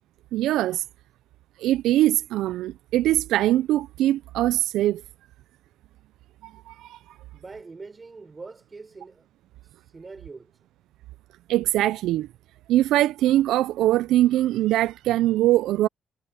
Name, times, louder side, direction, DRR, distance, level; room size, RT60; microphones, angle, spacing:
voice 1, 0.3-0.8 1.6-5.0 6.4-7.0 11.5-12.3 12.7-15.9, right 14 dB, 90° right, 0.3 m, -22 dB
voice 2, 7.3-9.3 9.9-10.5, right 4 dB, 30° right, 4.7 m, -43 dB
cardioid pair, 90°, 0 cm